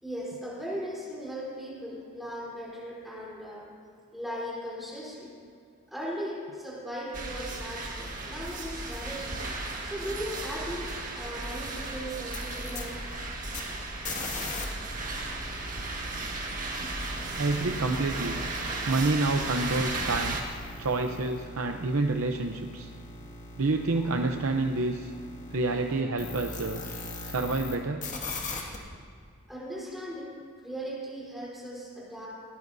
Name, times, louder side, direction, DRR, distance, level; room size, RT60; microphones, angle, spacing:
voice 1, 0.0-3.7 4.1-5.3 5.9-9.3 9.8-13.0 23.9-24.1 26.3-26.4 29.5-30.3 30.6-32.3, equal, ahead, -7 dB, 3.7 m, -38 dB
sound 1, 7.1-20.4, right 2 dB, 40° right, 1.6 m, -35 dB
sound 2, 12.2-14.6 14.9-27.8 28.0-28.8, left 2 dB, 35° left, 1.9 m, -41 dB
voice 2, 17.4-18.4 18.9-20.4 20.8-22.9 23.6-25.1 25.5-26.8 27.3-28.1, right 2 dB, 75° right, 4 dB, 0.7 m, -28 dB
20.5 x 18.0 x 2.7 m, 2.3 s
head